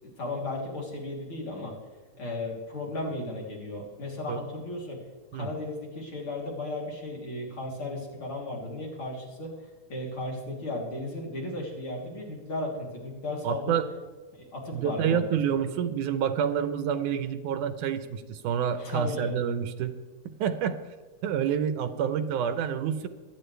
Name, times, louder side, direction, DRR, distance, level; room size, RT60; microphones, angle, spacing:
voice 1, 0.0-1.7 2.2-5.0 5.3-9.6 9.9-13.8 14.4-15.2 18.8-19.3, left 2 dB, 45° left, -3 dB, 3.9 m, -35 dB
voice 2, 13.4-13.8 14.7-19.9 20.3-20.8 21.2-23.1, right 8 dB, 80° right, 10 dB, 2.4 m, -28 dB
23.5 x 9.9 x 3.3 m, 1.3 s
omnidirectional pair, 3.5 m